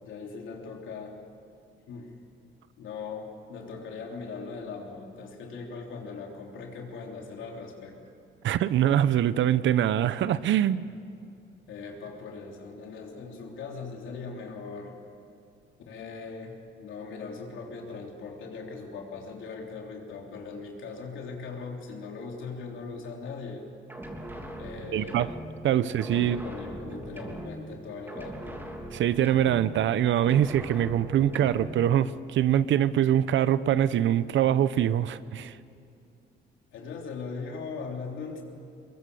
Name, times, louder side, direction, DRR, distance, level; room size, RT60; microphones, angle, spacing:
voice 1, 0.0-1.2 1.9-2.1 2.8-8.0 11.7-15.0 15.9-23.7 24.6-25.3 25.7-28.6 36.7-38.4, left 4 dB, 75° left, 1 dB, 3.6 m, -40 dB
voice 2, 8.4-10.9 24.9-25.3 25.6-26.4 28.9-35.6, right 11 dB, 70° right, 15 dB, 0.8 m, -24 dB
sound 1, 23.9-25.7 26.0-27.8 28.1-29.9 30.2-31.8, right 1 dB, 10° right, 3.3 m, -40 dB
24.0 x 21.5 x 7.1 m, 2.5 s
cardioid pair, 90°, 20 cm